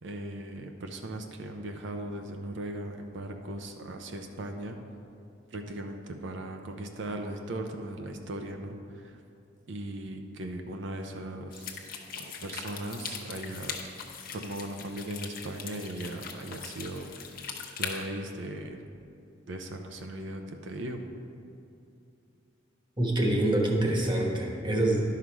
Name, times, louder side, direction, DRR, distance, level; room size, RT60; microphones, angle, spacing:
voice 1, 0.0-4.8 5.5-9.2 9.7-11.9 12.4-13.8 14.3-17.1 17.8-18.8 19.5-21.0, right 1 dB, 70° right, 4 dB, 0.6 m, -38 dB
sound 1, 11.5-18.0, left 6 dB, 50° left, 0.9 m, -40 dB
voice 2, 23.0-25.0, right 1 dB, 25° right, -1 dB, 1.2 m, -26 dB
11.0 x 5.7 x 4.7 m, 2.6 s
head